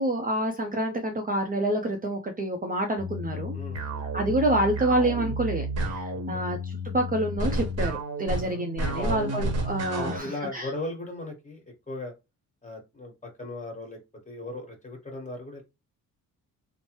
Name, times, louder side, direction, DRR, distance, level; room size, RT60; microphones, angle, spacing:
voice 1, 0.0-3.6 4.1-10.7, right 1 dB, 25° right, 0.6 m, -28 dB
sound 1, 3.0-10.2, right 1 dB, 45° right, 0.9 m, -31 dB
voice 2, 3.5-4.1 6.1-6.4 8.4-9.2 9.9-12.1 12.6-14.0 14.2-15.6, left 2 dB, 20° left, 1.5 m, -38 dB
3.1 x 2.1 x 3.0 m
cardioid pair, 80°, 35 cm